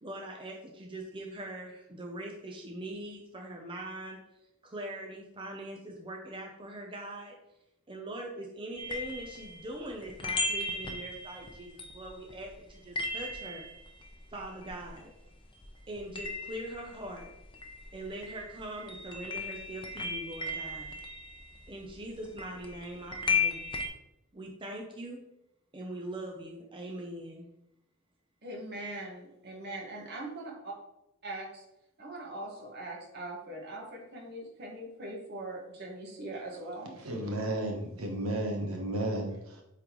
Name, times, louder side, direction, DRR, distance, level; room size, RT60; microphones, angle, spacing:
voice 1, 0.0-4.2 4.6-7.3 7.9-13.7 14.3-15.1 15.9-17.3 17.9-21.0 21.7-23.7 24.3-25.2 25.7-27.5, right 1 dB, 25° right, 0 dB, 0.7 m, -42 dB
sound 1, 8.8-15.4 15.6-23.9, left 3 dB, 25° left, 0.7 m, -36 dB
voice 2, 28.4-30.7 31.2-31.6 32.0-37.1, right 2 dB, 50° right, -1 dB, 1.7 m, -41 dB
voice 3, 37.0-39.6, right 1 dB, 80° right, 1 dB, 1.1 m, -33 dB
8.2 x 3.8 x 3.1 m, 0.86 s
head